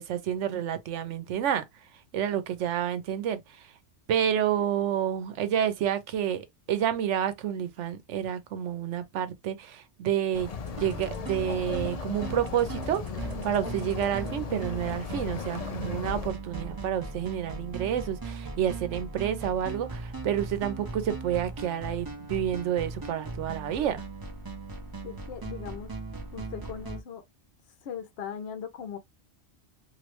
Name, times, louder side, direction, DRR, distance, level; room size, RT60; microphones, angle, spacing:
voice 1, 0.0-1.7 2.1-3.7 4.1-10.5 10.8-24.0, right 10 dB, 90° right, 1.0 m, -29 dB
sound 1, 10.3-16.3, left 5 dB, 45° left, 0.5 m, -36 dB
sound 2, 10.7-27.0, right 3 dB, 25° right, 0.5 m, -39 dB
voice 2, 25.0-25.9 26.3-27.2 27.8-29.0, left 8 dB, 65° left, 0.9 m, -39 dB
3.1 x 2.6 x 2.9 m
omnidirectional pair, 1.2 m